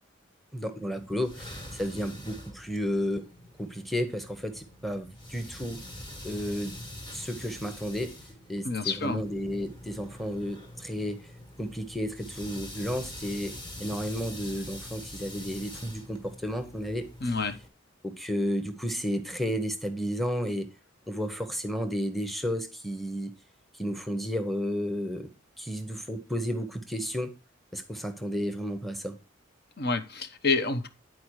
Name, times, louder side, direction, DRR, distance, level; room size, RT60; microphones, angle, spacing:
voice 1, 0.5-3.3 3.6-5.8 6.2-6.8 7.1-8.1 8.5-11.2 11.6-17.1 18.0-20.7 21.1-23.3 23.7-25.3 25.6-27.3 27.7-29.1, equal, ahead, 1.0 m, -32 dB
sound 1, 0.9-17.7, left 1 dB, 25° left, 1.6 m, -44 dB
voice 2, 8.6-9.2 17.2-17.5 29.8-30.9, left 3 dB, 55° left, 0.9 m, -28 dB
10.5 x 4.7 x 4.7 m
head